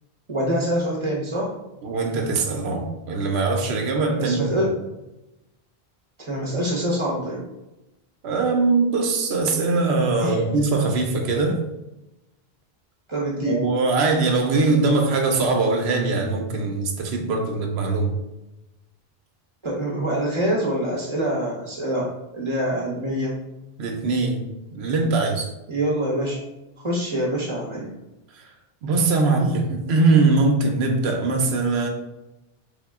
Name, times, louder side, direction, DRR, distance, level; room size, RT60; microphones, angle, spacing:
voice 1, 0.3-1.5 4.1-4.7 6.2-7.4 10.2-10.4 13.1-13.6 19.6-23.4 25.7-26.4 26.8-27.9, right 1 dB, 30° right, -3 dB, 0.8 m, -25 dB
voice 2, 1.8-4.5 8.2-11.6 13.5-18.2 23.8-25.5 28.3-28.5 28.8-31.9, right 3 dB, 90° right, 3 dB, 0.9 m, -22 dB
3.4 x 2.2 x 3.5 m, 0.95 s
omnidirectional pair, 1.0 m